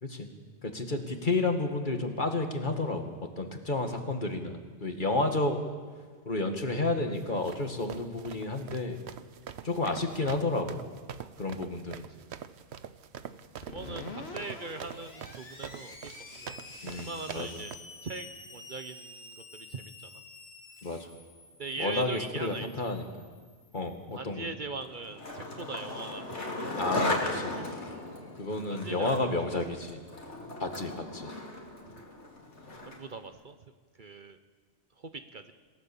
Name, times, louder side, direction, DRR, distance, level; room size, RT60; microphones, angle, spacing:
voice 1, 0.6-5.6 6.3-9.0 9.6-10.8 11.4-12.1 16.8-17.5 20.8-21.1 21.8-23.3 23.7-24.5 26.8-27.2 27.4-27.6 28.4-30.0 30.6-31.3, left 2 dB, 45° left, 5 dB, 2.1 m, -31 dB
sound 1, 7.2-17.8, right 8 dB, 75° right, 1.1 m, -44 dB
Screech, 13.6-24.1, left 3 dB, 65° left, 2.1 m, -48 dB
voice 2, 13.7-16.5 16.9-17.7 18.0-20.2 21.6-23.0 24.1-26.6 27.0-28.1 28.7-29.3 31.9-32.0 32.8-33.6 34.0-34.4 35.0-35.5, right 3 dB, 50° right, 9 dB, 1.0 m, -41 dB
Skateboard, 24.8-33.2, left 2 dB, 85° left, 3.1 m, -37 dB
27.0 x 16.5 x 7.1 m, 1.5 s
omnidirectional pair, 1.1 m